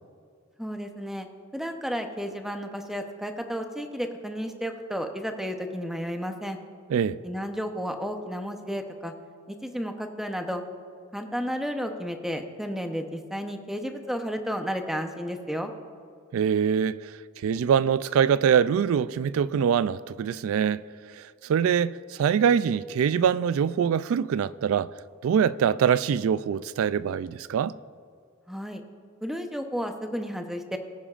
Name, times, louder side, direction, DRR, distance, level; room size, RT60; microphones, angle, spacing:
voice 1, 0.6-1.3 1.5-6.6 7.2-9.1 9.5-10.6 11.1-15.7 28.5-28.8 29.2-30.8, equal, ahead, 0.7 m, -32 dB
voice 2, 16.3-17.1 17.4-20.8 21.2-24.9 25.2-27.7, right 7 dB, 75° right, 0.3 m, -24 dB
19.0 x 10.0 x 2.5 m
head